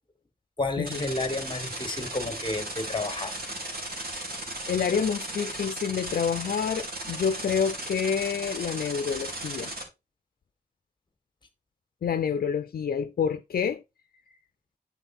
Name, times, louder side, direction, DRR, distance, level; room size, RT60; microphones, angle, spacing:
voice 1, 0.6-3.3, left 2 dB, 30° left, 1.6 m, -31 dB
sound 1, 0.9-9.8, right 1 dB, 90° right, 2.7 m, -36 dB
voice 2, 4.7-9.7 12.0-13.8, left 7 dB, 80° left, 0.5 m, -28 dB
9.9 x 4.2 x 4.2 m
wide cardioid pair, 110°, 15 cm